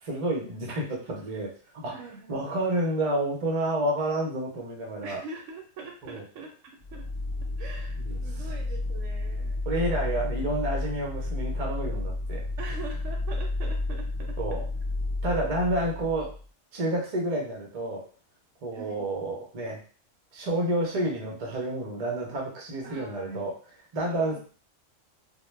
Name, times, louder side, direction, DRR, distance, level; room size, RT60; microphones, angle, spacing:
voice 1, 0.0-1.5 1.7-1.9 2.3-5.2 6.0-6.2 8.0-8.2 9.7-12.4 14.4-14.6 15.2-16.3 16.7-18.0 18.6-19.8 20.3-23.5 23.9-24.4, right 1 dB, 40° right, -1 dB, 0.6 m, -29 dB
voice 2, 1.9-2.5 5.0-7.1 7.6-9.6 12.6-14.6 18.7-19.1 22.8-23.5 24.0-24.4, right 3 dB, 75° right, 2 dB, 0.9 m, -43 dB
sound 1, 6.8-16.4, left 2 dB, 80° left, 1.1 m, -31 dB
2.2 x 2.1 x 3.1 m, 0.41 s
omnidirectional pair, 1.3 m